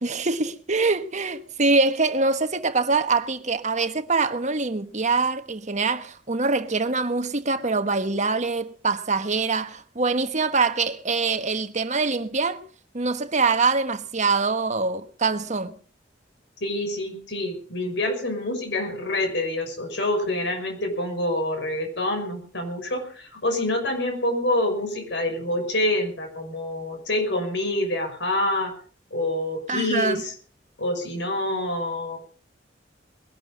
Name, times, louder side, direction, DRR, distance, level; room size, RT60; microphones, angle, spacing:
voice 1, 0.0-12.6 12.9-15.8 29.7-30.2, right 3 dB, 40° right, 1.3 m, -24 dB
voice 2, 16.6-28.7 29.1-30.3 30.8-32.2, left 1 dB, 70° left, 6.1 m, -26 dB
21.0 x 12.0 x 5.2 m
head